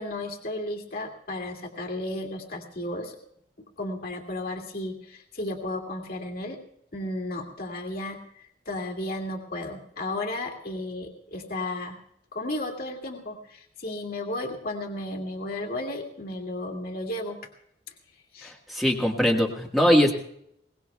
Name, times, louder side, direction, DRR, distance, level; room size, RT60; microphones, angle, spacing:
voice 1, 0.0-3.2 3.8-6.6 6.9-8.2 8.7-12.0 12.3-17.4 18.3-18.5, left 1 dB, 55° left, 3 dB, 2.1 m, -33 dB
voice 2, 18.4-20.1, equal, ahead, -1 dB, 1.5 m, -22 dB
22.0 x 19.0 x 2.3 m, 0.71 s
head